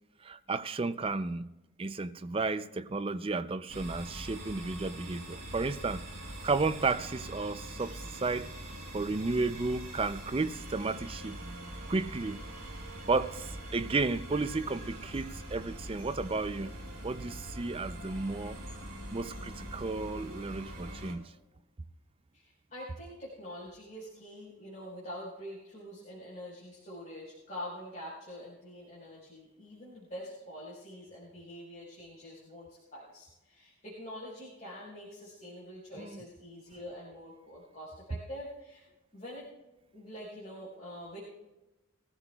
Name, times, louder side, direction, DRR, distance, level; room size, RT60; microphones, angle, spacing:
voice 1, 0.2-1.5 1.8-6.0 6.4-8.5 8.9-11.4 11.9-12.4 13.0-16.7 17.0-18.6 19.1-21.3 36.0-36.2, right 3 dB, 25° right, 0.4 m, -33 dB
sound 1, 3.7-21.1, right 1 dB, 40° right, 4.3 m, -43 dB
voice 2, 22.3-38.8 39.1-39.5 39.9-41.2, equal, 35° left, 4.6 m, -45 dB
23.0 x 15.0 x 2.3 m
head